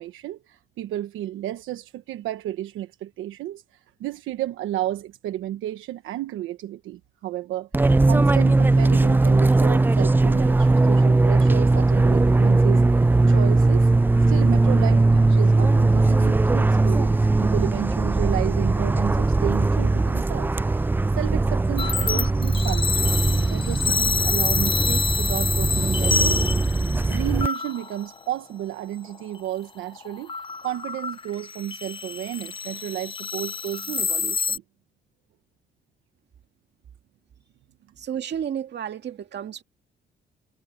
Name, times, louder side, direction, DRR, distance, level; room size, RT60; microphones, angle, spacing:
voice 1, 0.0-13.9 14.3-23.2 23.5-26.4 27.1-30.3 30.6-34.6, right 13 dB, 85° right, 1.2 m, -32 dB
Fixed-wing aircraft airplane, 7.7-27.5, right 2 dB, 10° right, 0.3 m, -19 dB
sound 1, 21.8-28.2 29.0-29.5 29.8-34.6, left 5 dB, 25° left, 0.6 m, -28 dB
voice 2, 38.0-39.6, right 9 dB, 60° right, 2.2 m, -31 dB
cardioid pair, 90°, 20 cm